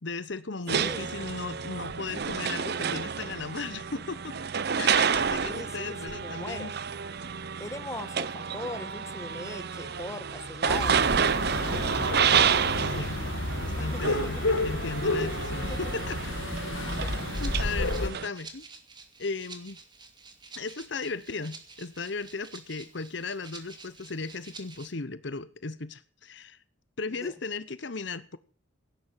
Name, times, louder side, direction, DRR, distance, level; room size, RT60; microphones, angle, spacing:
voice 1, 0.0-4.4 4.8-6.7 12.8-13.2 13.6-14.4 14.6-16.3 17.4-18.6 19.2-19.8 20.6-26.6 27.0-28.4, left 4 dB, 60° left, 0.9 m, -36 dB
voice 2, 0.7-1.0 5.4-6.7 7.6-11.1 11.6-12.0 13.8-14.4 15.7-15.8 17.0-17.2 27.2-27.3, left 1 dB, 15° left, 1.2 m, -40 dB
sound 1, 0.7-18.3, right 6 dB, 55° right, 0.7 m, -30 dB
sound 2, 10.7-18.1, left 2 dB, 75° left, 1.6 m, -31 dB
Rattle (instrument), 16.8-24.9, right 4 dB, 20° right, 2.4 m, -49 dB
17.0 x 9.7 x 7.5 m
head